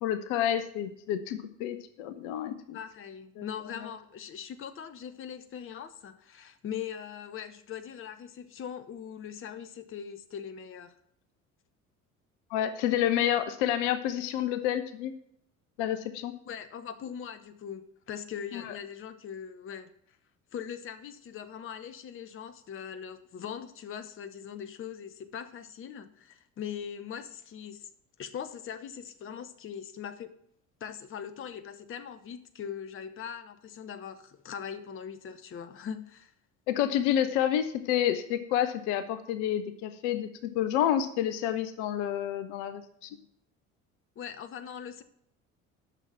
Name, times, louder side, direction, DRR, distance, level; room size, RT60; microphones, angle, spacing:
voice 1, 0.0-2.8 3.4-3.5 12.5-15.1 15.8-16.3 18.5-18.7 36.7-43.2, left 10 dB, 60° left, 11 dB, 0.9 m, -29 dB
voice 2, 2.7-10.9 16.5-19.9 20.5-27.9 28.2-30.3 30.8-36.3 44.2-45.0, left 8 dB, 30° left, 11 dB, 0.9 m, -41 dB
9.9 x 6.3 x 5.8 m, 0.70 s
figure-of-eight pair, 55°, 41 cm